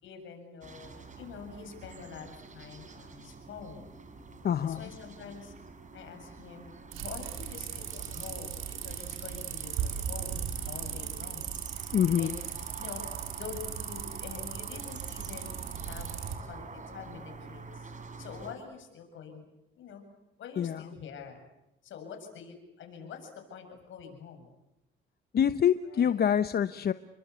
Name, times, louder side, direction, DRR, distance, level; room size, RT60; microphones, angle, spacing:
voice 1, 0.0-3.9 4.6-5.5 5.9-11.6 12.2-12.4 12.8-16.1 16.4-19.4 19.8-20.0 20.4-21.4 21.8-24.5 25.8-26.1, left 6 dB, 75° left, 5 dB, 7.5 m, -46 dB
sound 1, 0.6-18.5, right 4 dB, 40° right, 4.6 m, -47 dB
voice 2, 4.4-4.9 11.9-12.4 20.6-20.8 25.3-26.9, left 9 dB, 50° left, 12 dB, 0.9 m, -26 dB
sound 2, 6.9-16.3, right 9 dB, 90° right, 4.5 m, -37 dB
30.0 x 23.5 x 8.4 m, 0.90 s
cardioid pair, 90°, 20 cm